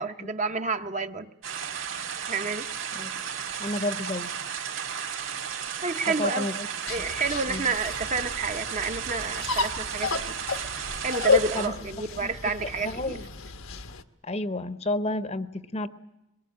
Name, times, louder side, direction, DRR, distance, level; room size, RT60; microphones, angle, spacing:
voice 1, 0.0-1.6 2.3-2.7 5.8-6.5 6.9-10.4 11.0-13.2, right 4 dB, 35° right, 8 dB, 0.8 m, -30 dB
sound 1, 1.4-11.7, right 7 dB, 80° right, 3.6 m, -34 dB
voice 2, 3.6-4.3 6.2-6.7 7.5-7.6 11.5-11.7 12.2-12.3 12.8-13.2 14.2-15.9, left 2 dB, 30° left, 12 dB, 0.8 m, -30 dB
sound 2, 6.9-14.0, left 4 dB, 80° left, 1.2 m, -31 dB
23.0 x 21.0 x 8.5 m, 0.95 s
head